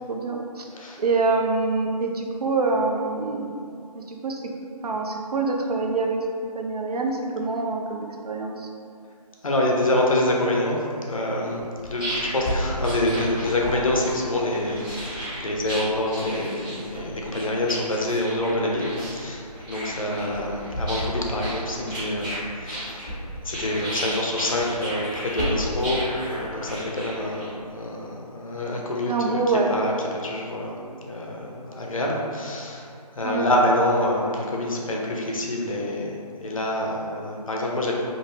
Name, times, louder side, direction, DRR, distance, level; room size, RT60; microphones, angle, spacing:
voice 1, 0.1-0.6 1.0-3.6 3.9-4.4 4.8-6.3 6.5-8.7 29.1-29.7 33.2-33.5, right 3 dB, 70° right, 1 dB, 0.4 m, -25 dB
voice 2, 9.4-23.1 23.4-29.4 29.7-29.9 30.2-30.7 31.0-32.9 33.1-36.1 36.4-37.9, left 1 dB, 55° left, -1 dB, 0.5 m, -26 dB
sound 1, 11.6-27.7, equal, 10° right, 0.6 m, -32 dB
2.4 x 2.3 x 3.1 m, 2.4 s
figure-of-eight pair, 160°, 21 cm